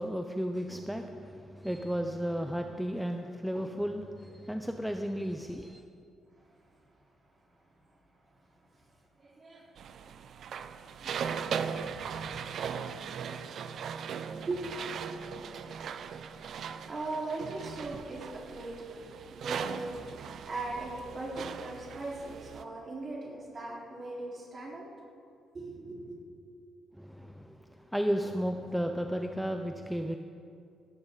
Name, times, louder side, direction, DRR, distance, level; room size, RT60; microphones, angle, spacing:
voice 1, 0.0-5.8 26.9-30.2, equal, ahead, 5 dB, 0.8 m, -34 dB
voice 2, 6.3-7.6 8.2-8.9 9.1-9.7 11.0-11.8 14.4-24.9 25.5-26.2, right 2 dB, 40° right, -4 dB, 4.6 m, -41 dB
sound 1, 9.8-22.6, right 7 dB, 65° right, 0.7 m, -39 dB
sound 2, 11.1-18.8, left 1 dB, 80° left, 4.9 m, -61 dB
18.0 x 16.0 x 4.1 m, 2.4 s
cardioid pair, 90°, 0 cm